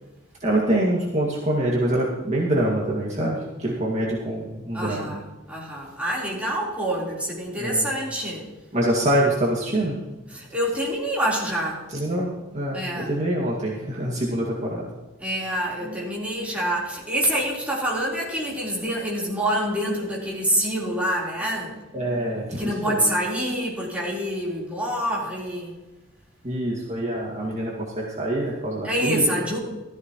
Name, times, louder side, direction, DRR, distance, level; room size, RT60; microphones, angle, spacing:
voice 1, 0.4-5.1 7.6-7.9 8.7-10.0 11.9-12.3 12.5-14.9 15.8-16.1 21.9-23.0 26.4-29.2, right 1 dB, 35° right, -4 dB, 2.1 m, -25 dB
voice 2, 4.7-8.5 10.3-11.9 12.7-13.1 15.2-21.7 22.5-25.7 28.8-29.6, equal, 5° right, -6 dB, 3.8 m, -26 dB
15.0 x 14.0 x 3.1 m, 1.1 s
head